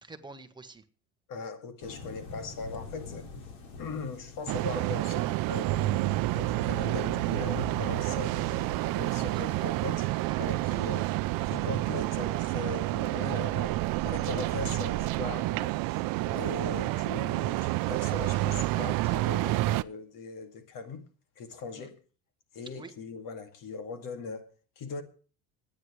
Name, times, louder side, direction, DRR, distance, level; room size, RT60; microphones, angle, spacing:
voice 1, 0.0-0.8 9.2-9.6 10.0-10.7 21.7-21.9 22.8-22.9, right 3 dB, 10° right, 1.2 m, -49 dB
voice 2, 1.3-3.3 3.8-6.0 6.4-8.6 8.9-10.1 10.4-11.1 11.5-13.7 14.0-21.1 21.4-22.0 22.5-24.5 24.8-25.0, left 4 dB, 50° left, 2.3 m, -40 dB
sound 1, 1.8-10.0, left 3 dB, 90° left, 4.4 m, -44 dB
sound 2, 4.5-19.8, right 18 dB, 50° right, 0.6 m, -29 dB
sound 3, 6.6-15.3, right 12 dB, 70° right, 1.3 m, -42 dB
24.0 x 9.8 x 3.2 m
cardioid pair, 130°, 43 cm